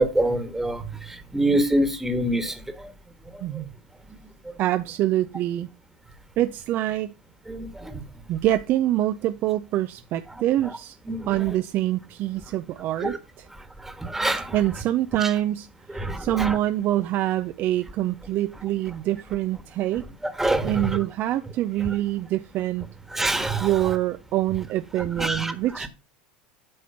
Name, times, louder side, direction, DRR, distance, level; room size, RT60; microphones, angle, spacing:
voice 1, 0.0-2.9 7.5-8.0 11.1-11.4 13.0-13.2 13.8-14.5 15.2-15.3 15.9-16.6 20.2-21.0 23.1-23.7 25.2-25.5 25.8-25.9, right 1 dB, 5° right, 1.4 m, -25 dB
voice 2, 3.4-3.7 4.6-5.7 6.4-7.1 8.3-10.9 11.3-13.5 14.5-15.7 15.9-20.0 20.6-22.9 23.6-25.9, right 13 dB, 50° right, 0.5 m, -25 dB
8.7 x 4.9 x 5.7 m
hypercardioid pair, 95°, 5 cm